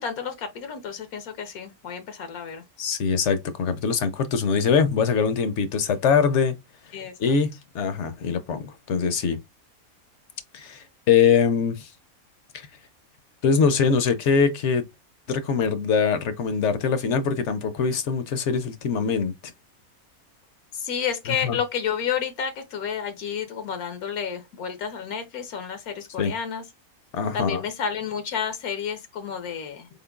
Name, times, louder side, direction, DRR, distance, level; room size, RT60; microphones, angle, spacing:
voice 1, 0.0-2.6 6.9-7.4 20.7-26.6 27.3-29.9, left 7 dB, 80° left, 1.2 m, -30 dB
voice 2, 2.8-6.6 7.2-9.4 10.5-11.9 12.5-12.7 13.4-14.8 15.3-19.3 21.4-21.6 26.2-26.3 27.1-27.6, left 6 dB, 60° left, 0.8 m, -23 dB
4.2 x 3.7 x 2.2 m
omnidirectional pair, 1.5 m